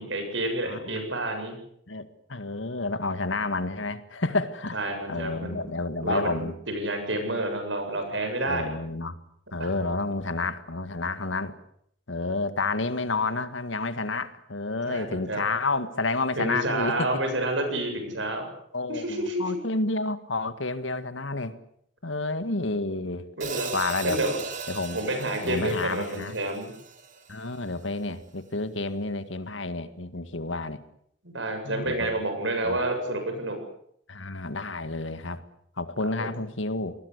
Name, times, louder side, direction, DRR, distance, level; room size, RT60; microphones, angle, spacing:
voice 1, 0.0-1.6 4.7-5.7 6.0-8.7 9.6-9.7 14.8-15.4 16.4-18.5 18.9-19.5 23.4-23.7 24.0-24.4 24.9-26.7 31.2-33.6 36.2-36.3, right 1 dB, 70° right, 6 dB, 7.7 m, -29 dB
voice 2, 0.7-1.1 1.9-4.8 5.1-6.6 8.5-9.2 9.5-11.6 12.1-17.1 18.7-21.6 22.0-23.2 23.7-24.2 24.7-25.0 25.4-26.4 27.3-30.8 31.6-31.9 32.6-32.8 34.1-35.4 35.8-37.0, left 3 dB, 80° left, 11 dB, 2.0 m, -30 dB
Hi-hat, 23.4-27.7, right 5 dB, 40° right, 2.9 m, -38 dB
27.5 x 20.0 x 8.3 m, 0.70 s
head